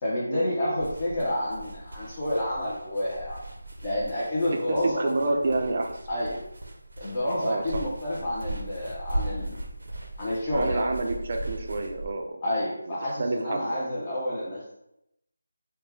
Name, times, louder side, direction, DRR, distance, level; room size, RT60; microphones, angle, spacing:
voice 1, 0.0-3.4 3.8-5.4 6.1-6.4 7.0-9.6 10.2-10.9 12.4-14.7, left 1 dB, 20° left, -8 dB, 0.7 m, -29 dB
sound 1, 0.8-12.1, right 1 dB, 75° right, 0.7 m, -38 dB
voice 2, 4.7-6.0 7.4-7.9 10.5-12.4 12.9-13.8 14.1-14.2, right 2 dB, 40° right, 3 dB, 0.4 m, -29 dB
4.4 x 2.1 x 3.2 m, 0.82 s
figure-of-eight pair, 170°, 0 cm